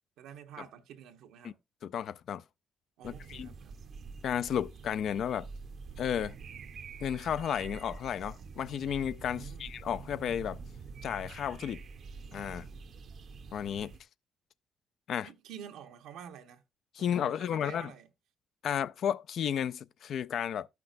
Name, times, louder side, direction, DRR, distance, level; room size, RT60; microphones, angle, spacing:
voice 1, 0.2-1.6 3.0-3.8 9.3-9.7 15.2-16.6 17.0-18.1, right 9 dB, 90° right, 1.0 m, -49 dB
voice 2, 1.8-2.4 3.0-3.5 4.2-5.5 6.0-6.3 7.0-10.6 11.0-11.8 12.3-12.7 13.5-13.9 15.1-15.3 17.0-17.9 18.6-20.7, left 9 dB, 70° left, 0.3 m, -33 dB
sound 1, 3.0-14.0, right 4 dB, 60° right, 0.7 m, -46 dB
13.0 x 5.8 x 2.5 m
cardioid pair, 90°, 0 cm